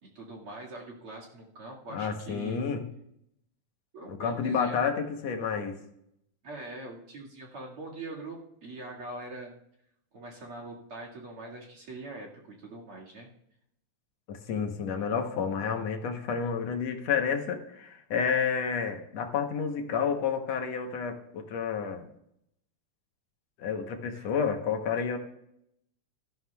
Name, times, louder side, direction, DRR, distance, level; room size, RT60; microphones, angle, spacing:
voice 1, 0.0-2.6 3.9-4.9 6.4-9.6 10.1-13.3 24.1-24.3, right 2 dB, 50° right, -3 dB, 2.7 m, -43 dB
voice 2, 1.9-2.8 4.1-5.8 14.3-22.1 23.6-25.2, left 6 dB, 65° left, 4 dB, 2.1 m, -30 dB
17.0 x 13.5 x 2.3 m, 0.76 s
omnidirectional pair, 3.5 m